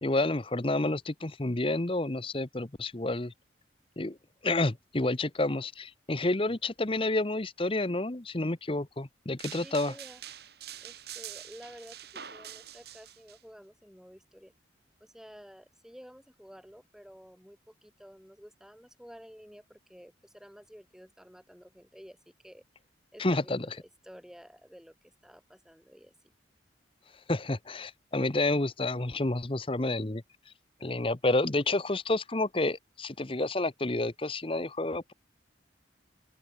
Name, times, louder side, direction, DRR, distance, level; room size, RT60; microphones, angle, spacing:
voice 1, 0.0-3.3 4.0-4.2 4.4-9.9 23.2-23.8 27.3-30.2 30.8-35.1, left 2 dB, 30° left, 0.9 m, -29 dB
sound 1, 9.4-13.4, right 10 dB, 55° right, 2.7 m, -45 dB
voice 2, 9.6-10.2 10.8-14.5 15.0-22.6 23.1-26.1, equal, 5° right, 5.3 m, -52 dB
open air
head